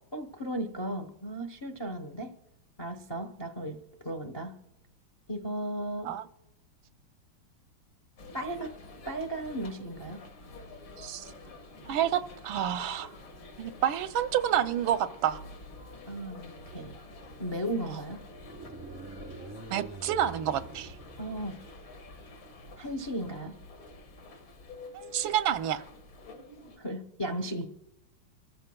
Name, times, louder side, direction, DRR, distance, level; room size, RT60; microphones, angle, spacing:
voice 1, 0.1-2.3 2.8-4.6 5.3-6.1 8.3-8.7 9.0-10.2 16.1-16.9 17.4-18.2 21.2-21.6 22.8-23.5 26.8-27.7, right 1 dB, 40° left, 5 dB, 0.3 m, -35 dB
sound 1, 8.2-26.8, left 2 dB, 70° left, 2.2 m, -49 dB
voice 2, 11.0-11.3 11.9-13.1 13.6-15.4 17.9-18.0 19.7-21.0 24.9-25.8, right 10 dB, 85° right, 12 dB, 1.4 m, -29 dB
sound 2, 18.3-22.0, right 3 dB, 25° right, 0.6 m, -46 dB
27.0 x 14.5 x 2.2 m, 0.89 s
omnidirectional pair, 2.2 m